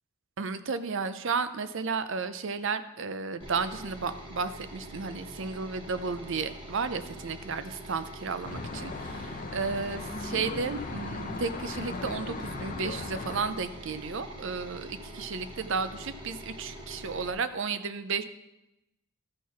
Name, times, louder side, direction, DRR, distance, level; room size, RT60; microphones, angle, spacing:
voice 1, 0.4-18.2, right 5 dB, 60° right, 11 dB, 0.6 m, -33 dB
Valve Cover, 3.4-17.3, equal, 25° right, 1.2 m, -45 dB
Traffic noise roadway noise, 8.4-13.5, left 3 dB, 40° left, 0.6 m, -37 dB
13.5 x 4.7 x 5.6 m, 0.93 s
head